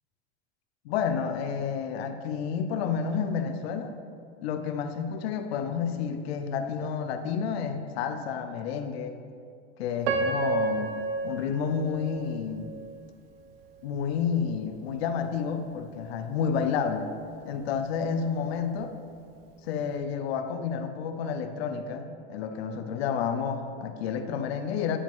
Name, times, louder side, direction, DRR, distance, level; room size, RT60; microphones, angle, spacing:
voice 1, 0.8-3.9 4.4-9.2 9.8-11.0 11.2-12.7 13.8-17.1 17.4-18.9 19.6-25.0, left 6 dB, 80° left, 8 dB, 0.7 m, -30 dB
Piano, 10.0-13.1 13.6-13.7 14.4-14.6, right 4 dB, 70° right, 0.7 m, -31 dB
9.8 x 5.0 x 3.7 m, 2.3 s
supercardioid pair, 170°, 31 cm